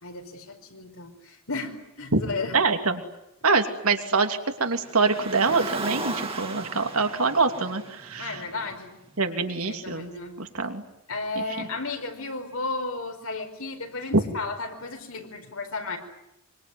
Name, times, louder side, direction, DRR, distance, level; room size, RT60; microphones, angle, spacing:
voice 1, 0.0-2.6 8.2-8.9 9.6-10.4 11.1-16.0, left 3 dB, 85° left, 5 dB, 4.8 m, -34 dB
voice 2, 2.5-3.0 3.4-8.4 9.2-10.1 10.4-10.8 11.4-11.7 14.1-14.2, right 4 dB, 90° right, 6 dB, 2.8 m, -25 dB
Car, 4.7-9.1, right 3 dB, 25° right, 2.1 m, -36 dB
25.0 x 24.0 x 9.7 m, 0.85 s
head